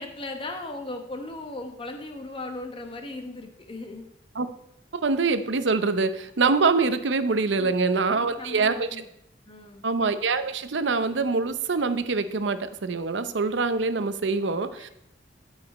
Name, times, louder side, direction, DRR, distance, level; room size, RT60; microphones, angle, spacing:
voice 1, 0.0-4.1 7.6-7.7 8.1-9.0 9.4-9.8 14.4-14.9, left 2 dB, 30° left, 4 dB, 1.0 m, -38 dB
voice 2, 4.9-8.9 9.8-14.9, right 4 dB, 80° right, 11 dB, 0.7 m, -24 dB
13.5 x 4.9 x 4.2 m, 0.80 s
head